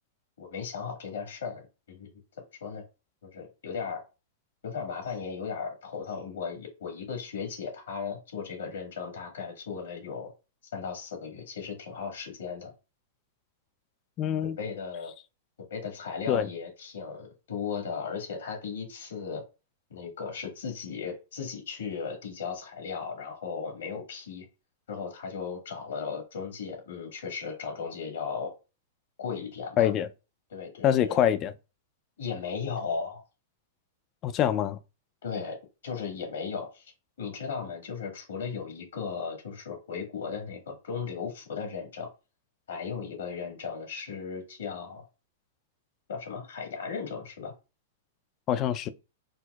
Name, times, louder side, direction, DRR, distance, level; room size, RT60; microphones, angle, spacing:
voice 1, 0.4-1.6 1.9-2.1 2.6-2.8 3.2-4.0 4.6-10.3 10.7-12.7 14.4-15.1 15.7-19.4 19.9-24.4 24.9-28.5 29.2-29.9 30.5-31.2 32.2-33.2 35.2-35.6 35.8-36.9 37.2-42.1 42.7-45.0 46.1-47.5, left 6 dB, 85° left, 1.5 m, -36 dB
voice 2, 14.2-14.6 16.3-16.5 29.8-30.1 30.8-31.5 34.2-34.8 48.5-48.9, left 10 dB, 35° left, 0.3 m, -25 dB
4.5 x 2.0 x 2.3 m
hypercardioid pair, 120°, 0 cm